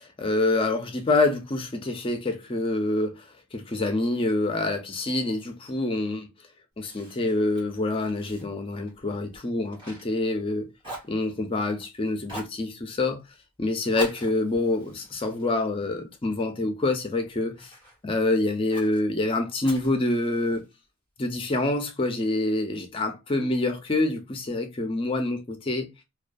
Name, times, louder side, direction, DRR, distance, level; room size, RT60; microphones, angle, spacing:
voice 1, 0.0-3.2 3.5-6.3 6.8-10.7 11.1-13.2 13.6-17.7 18.0-20.6 21.2-25.9, left 2 dB, 25° left, 0.4 m, -26 dB
Fire, 6.8-10.5 10.8-11.8 12.2-12.6 13.9-16.4 16.9-18.0 18.7-19.0 19.6-20.7, right 1 dB, 20° right, 1.2 m, -43 dB
2.3 x 2.3 x 2.4 m
head